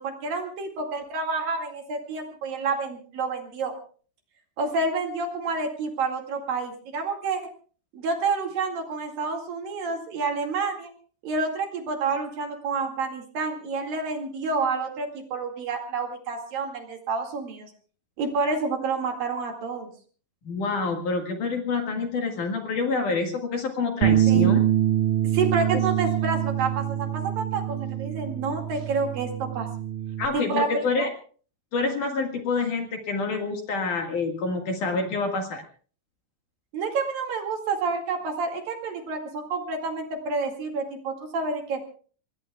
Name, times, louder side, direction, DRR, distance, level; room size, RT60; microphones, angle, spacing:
voice 1, 0.0-3.7 4.6-7.4 7.9-10.9 11.2-17.7 18.2-19.9 24.3-24.5 25.3-29.7 30.3-31.1 36.7-41.8, right 4 dB, 55° right, 3 dB, 3.7 m, -29 dB
voice 2, 20.4-24.6 25.7-25.8 30.2-31.1 31.7-35.6, left 4 dB, 55° left, 3 dB, 2.9 m, -27 dB
Bass guitar, 24.0-30.3, right 11 dB, 75° right, 1.9 m, -25 dB
26.5 x 20.5 x 2.3 m, 0.43 s
omnidirectional pair, 5.1 m